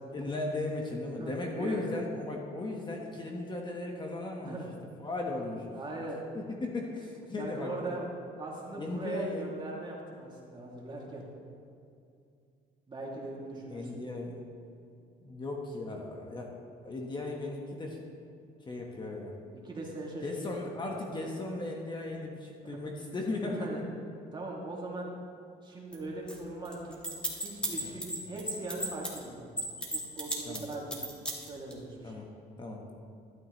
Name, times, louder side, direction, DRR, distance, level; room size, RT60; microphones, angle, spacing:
voice 1, 0.1-4.6 5.0-5.7 6.3-8.0 8.8-9.5 13.7-14.4 15.2-16.5 16.8-18.0 18.6-19.4 20.2-23.8 27.6-27.9 30.4-30.7 32.0-32.3 32.6-32.9, left 2 dB, 25° left, 0 dB, 1.3 m, -36 dB
voice 2, 1.2-1.9 4.4-4.7 5.7-6.2 7.4-8.0 8.4-11.2 12.9-14.0 19.6-20.9 22.6-22.8 23.4-23.8 24.3-25.1 25.6-27.0 27.4-29.6 29.9-31.1 31.5-32.1, right 2 dB, 25° right, -3 dB, 2.5 m, -40 dB
sound 1, 25.9-26.0 26.3-26.4 26.6-29.2 29.6-31.7, right 1 dB, 5° left, 2.1 m, -33 dB
12.5 x 11.5 x 3.1 m, 2.5 s
cardioid pair, 110°, 17 cm